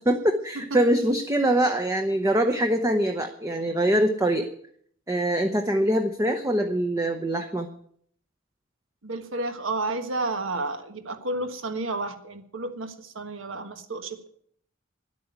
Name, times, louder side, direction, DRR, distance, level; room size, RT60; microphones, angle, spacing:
voice 1, 0.1-4.5 5.1-7.7, right 1 dB, 15° right, 5 dB, 0.8 m, -23 dB
voice 2, 9.0-14.3, right 2 dB, 65° right, 8 dB, 1.5 m, -31 dB
11.0 x 8.5 x 9.2 m, 0.62 s
head